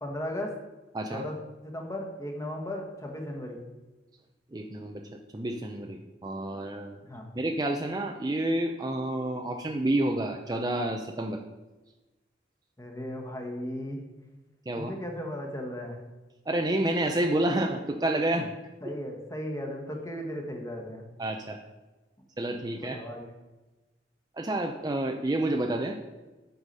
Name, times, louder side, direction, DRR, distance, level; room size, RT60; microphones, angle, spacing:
voice 1, 0.0-0.5 1.1-1.4 1.6-3.6 7.0-7.3 12.8-14.0 14.8-16.0 18.8-21.1 22.8-23.2, left 1 dB, 15° left, 2 dB, 1.2 m, -36 dB
voice 2, 0.9-1.3 4.5-5.0 5.3-7.0 7.4-11.4 14.7-14.9 16.5-18.5 21.2-21.6 22.4-23.0 24.4-26.0, right 1 dB, 20° right, 3 dB, 0.4 m, -29 dB
8.1 x 5.7 x 5.3 m, 1.2 s
head